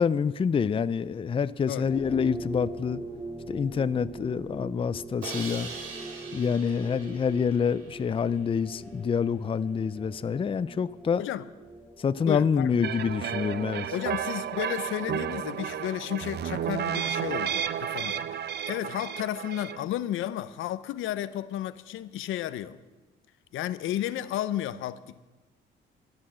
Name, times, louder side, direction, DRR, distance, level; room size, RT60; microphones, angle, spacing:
voice 1, 0.0-3.0 3.5-5.7 6.3-11.2 12.0-13.9, left 6 dB, 25° left, 0.4 m, -27 dB
sound 1, 1.9-15.0, right 2 dB, 15° right, 2.5 m, -43 dB
Crash cymbal, 5.2-8.3, right 4 dB, 85° right, 2.7 m, -41 dB
voice 2, 12.3-12.7 13.9-22.8 23.5-25.2, left 12 dB, 85° left, 0.7 m, -33 dB
sound 2, 12.8-19.8, right 8 dB, 55° right, 0.7 m, -32 dB
12.5 x 11.5 x 7.6 m
cardioid pair, 90°, 20 cm